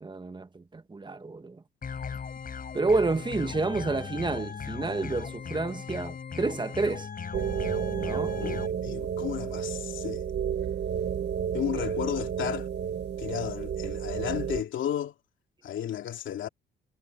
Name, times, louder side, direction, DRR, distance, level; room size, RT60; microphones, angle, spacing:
voice 1, 0.0-1.6 2.7-7.1 8.0-8.4, right 3 dB, 25° right, 1.5 m, -29 dB
sound 1, 1.8-8.7, left 6 dB, 45° left, 7.1 m, -38 dB
sound 2, 7.3-14.6, right 8 dB, 60° right, 2.1 m, -31 dB
voice 2, 8.3-10.2 11.5-12.7 13.2-15.1 15.6-16.5, left 10 dB, 75° left, 3.0 m, -33 dB
cardioid pair, 90°, 20 cm